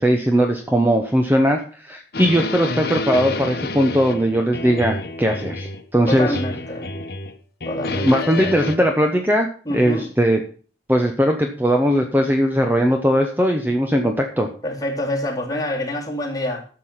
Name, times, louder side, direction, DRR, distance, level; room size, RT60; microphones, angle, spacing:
voice 1, 0.0-6.4 8.0-10.4 10.9-14.5, equal, 10° right, 4 dB, 0.8 m, -19 dB
sound 1, 2.1-5.8 6.1-7.3 7.6-8.8, left 2 dB, 55° left, 1.1 m, -28 dB
voice 2, 6.1-6.9 7.7-8.5 9.6-10.0 14.6-16.6, left 1 dB, 20° left, -1 dB, 2.6 m, -26 dB
12.0 x 6.7 x 5.7 m, 0.40 s
head